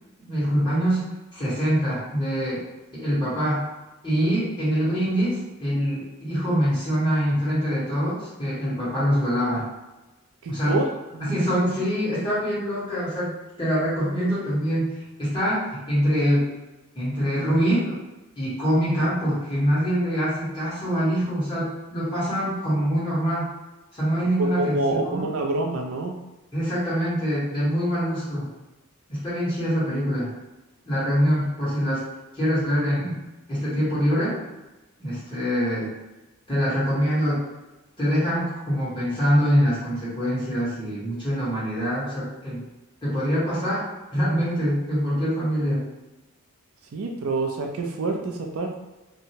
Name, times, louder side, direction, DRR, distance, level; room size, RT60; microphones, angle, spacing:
voice 1, 0.2-1.0 1.3-2.6 2.9-3.6 4.0-9.6 10.5-10.8 11.2-13.3 13.6-16.5 16.9-18.0 18.4-23.5 23.9-25.2 26.5-28.5 29.1-30.3 30.8-32.0 32.3-33.2 33.5-34.3 35.0-35.9 36.5-37.4 38.0-42.6 43.0-43.8 44.1-45.9, equal, 20° left, -10 dB, 1.2 m, -24 dB
voice 2, 10.4-10.8 11.1-11.3 24.4-26.1 46.9-48.8, right 2 dB, 70° right, 2 dB, 0.4 m, -27 dB
2.6 x 2.1 x 2.8 m, 1.1 s
head